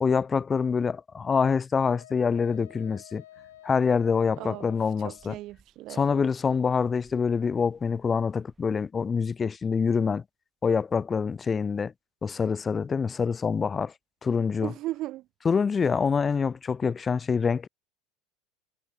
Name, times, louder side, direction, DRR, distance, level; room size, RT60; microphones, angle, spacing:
voice 1, 0.0-3.2 3.6-5.4 5.9-10.2 10.6-11.9 12.2-13.9 14.2-14.7 15.4-17.7, left 5 dB, 25° left, 0.5 m, -25 dB
Wind instrument woodwind instrument, 1.8-5.4, left 13 dB, 90° left, 1.2 m, -51 dB
sound 1, 3.1-8.9, right 4 dB, 20° right, 5.1 m, -66 dB
voice 2, 4.4-4.7 5.0-6.3 14.6-15.2, right 16 dB, 55° right, 0.4 m, -37 dB
supercardioid pair, 100°, 0 cm